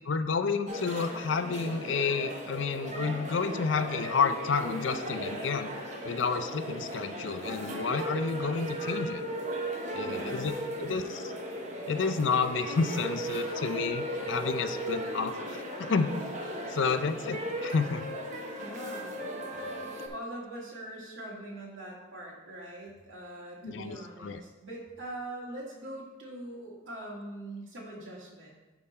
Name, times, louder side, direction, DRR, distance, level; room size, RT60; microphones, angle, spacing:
voice 1, 0.1-5.7 6.0-9.2 9.9-10.5 10.8-11.3 11.9-16.1 16.7-18.0 23.6-24.4, left 5 dB, 70° left, 10 dB, 0.5 m, -30 dB
sound 1, 0.7-20.1, right 1 dB, 40° right, 1.0 m, -36 dB
voice 2, 10.0-11.0 18.6-19.2 20.1-28.5, right 1 dB, 85° right, -3 dB, 2.1 m, -42 dB
11.0 x 3.7 x 4.3 m, 1.2 s
head